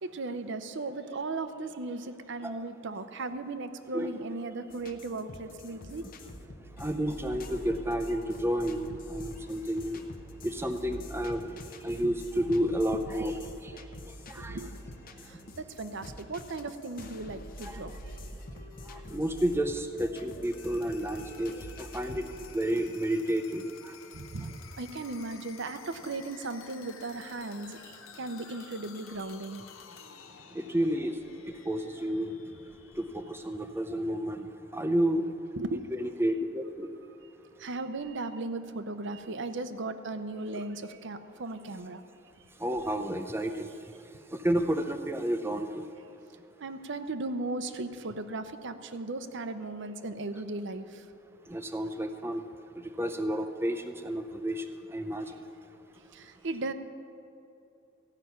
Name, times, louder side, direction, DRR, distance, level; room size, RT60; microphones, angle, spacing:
voice 1, 0.0-6.1 12.0-12.1 14.4-14.7 15.2-17.9 24.1-29.6 35.5-35.8 37.6-42.0 46.6-51.0 56.1-56.7, right 2 dB, 60° right, 10 dB, 0.7 m, -37 dB
sound 1, 4.7-22.5, equal, 45° left, 0.8 m, -45 dB
voice 2, 6.8-10.0 10.4-11.4 11.7-13.7 14.3-14.6 17.6-17.8 18.9-22.3 22.5-23.9 30.5-31.1 31.7-32.4 33.0-34.5 34.7-35.3 35.9-36.9 40.6-40.7 42.6-43.7 44.3-45.9 51.5-52.4 53.0-54.6 54.9-55.4, equal, 10° right, 7 dB, 0.6 m, -31 dB
sound 2, 20.4-34.2, left 7 dB, 80° left, 0.8 m, -52 dB
15.0 x 5.8 x 9.3 m, 2.8 s
head